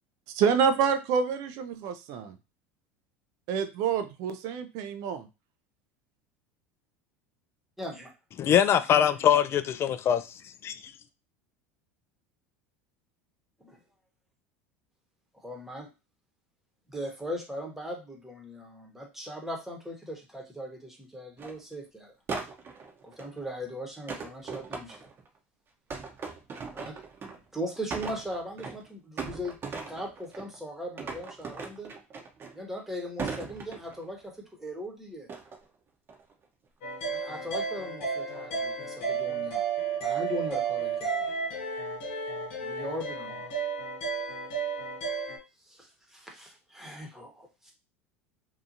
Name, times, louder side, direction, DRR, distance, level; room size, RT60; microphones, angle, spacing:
voice 1, 0.3-2.3 3.5-5.3, right 6 dB, 55° right, 0.4 m, -27 dB
voice 2, 7.8-8.1 13.6-13.8 15.3-15.9 16.9-22.1 23.0-25.1 26.7-27.0 27.5-31.9 32.5-35.3 37.0-39.7 40.0-41.3 42.6-43.5 45.6-47.7, equal, 5° right, 1.0 m, -39 dB
voice 3, 8.4-10.2 10.6-10.9, left 9 dB, 35° left, 0.3 m, -23 dB
sound 1, 21.4-21.6 22.3-23.4 24.1-25.3 25.9-27.5 27.8-28.9 29.2-30.6 31.0-32.8 33.2-34.2 35.3-35.6 36.1-36.4, right 4 dB, 35° right, 0.8 m, -38 dB
sound 2, 36.8-45.4, right 5 dB, 70° left, 1.0 m, -32 dB
2.8 x 2.4 x 2.6 m
hypercardioid pair, 80°, 7 cm